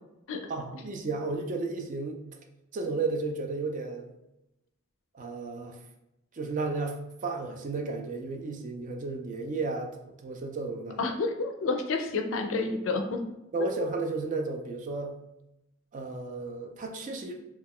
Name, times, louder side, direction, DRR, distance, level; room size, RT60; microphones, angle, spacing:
voice 1, 0.5-2.2 2.7-4.1 5.1-5.8 6.3-11.0 13.5-15.1 15.9-17.4, right 3 dB, 40° right, 3 dB, 0.4 m, -33 dB
voice 2, 11.0-13.2, left 3 dB, 65° left, 5 dB, 0.4 m, -29 dB
2.3 x 2.3 x 3.5 m, 0.89 s
head